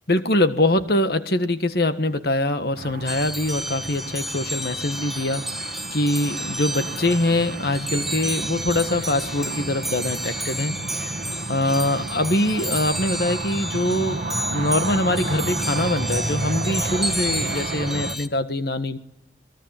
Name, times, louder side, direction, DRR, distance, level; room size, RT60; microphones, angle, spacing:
voice 1, 0.1-5.5 5.9-11.2 11.5-14.2 14.5-19.0, left 1 dB, 55° left, 9 dB, 1.7 m, -23 dB
sound 1, 2.8-18.2, right 2 dB, 45° right, 1.2 m, -32 dB
sound 2, 3.1-18.3, right 1 dB, ahead, 1.0 m, -31 dB
28.0 x 22.0 x 9.1 m, 0.82 s
head